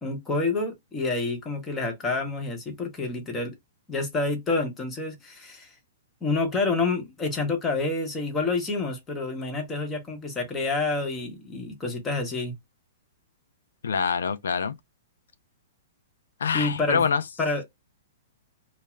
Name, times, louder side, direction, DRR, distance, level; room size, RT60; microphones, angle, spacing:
voice 1, 0.0-3.5 3.9-5.7 6.2-12.5 16.5-17.1 17.4-17.6, left 3 dB, 15° left, 0.9 m, -28 dB
voice 2, 13.8-14.7 16.4-17.2, left 6 dB, 90° left, 0.4 m, -25 dB
2.4 x 2.0 x 3.0 m
hypercardioid pair, 150°, 0 cm